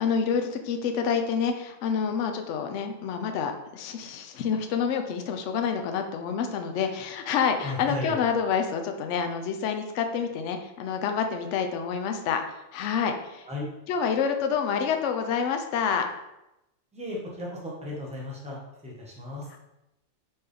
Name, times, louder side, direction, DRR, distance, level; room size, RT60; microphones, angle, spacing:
voice 1, 0.0-12.4 12.7-13.5 13.9-16.1, left 6 dB, 70° left, 5 dB, 0.8 m, -28 dB
voice 2, 7.6-8.2 13.4-13.7 16.9-19.5, left 2 dB, 5° right, -4 dB, 0.9 m, -35 dB
4.3 x 3.5 x 3.3 m, 0.91 s
omnidirectional pair, 1.4 m